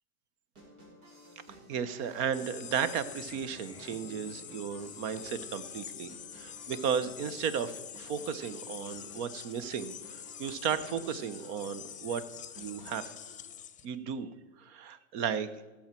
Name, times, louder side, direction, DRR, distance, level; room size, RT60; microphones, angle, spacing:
sound 1, 0.5-13.5, right 1 dB, 85° right, 4.3 m, -55 dB
voice 1, 1.7-12.2 12.6-13.1 13.8-14.3 14.6-15.5, right 7 dB, 55° right, 14 dB, 1.1 m, -34 dB
sound 2, 2.3-13.9, left 9 dB, 20° left, 0.8 m, -46 dB
sound 3, 3.0-7.5, left 1 dB, 10° right, 3.4 m, -58 dB
17.0 x 7.4 x 4.5 m, 1.2 s
hypercardioid pair, 115°, 41 cm